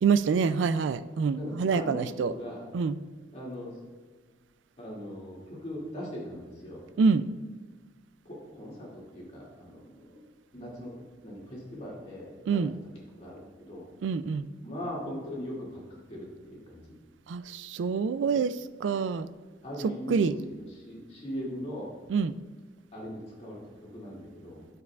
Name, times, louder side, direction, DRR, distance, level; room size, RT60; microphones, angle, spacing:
voice 1, 0.0-2.3 2.7-3.0 7.0-7.3 12.5-12.7 14.0-14.5 17.3-18.5 18.8-19.3 19.8-20.3 22.1-22.3, right 5 dB, 90° right, 14 dB, 0.3 m, -26 dB
voice 2, 1.4-2.6 3.3-3.7 4.8-6.8 8.2-10.9 11.2-12.6 13.2-13.8 14.6-15.8 16.1-16.9 19.6-21.9 22.9-24.6, equal, 35° left, -5 dB, 2.4 m, -40 dB
10.5 x 6.8 x 2.4 m, 1.4 s
head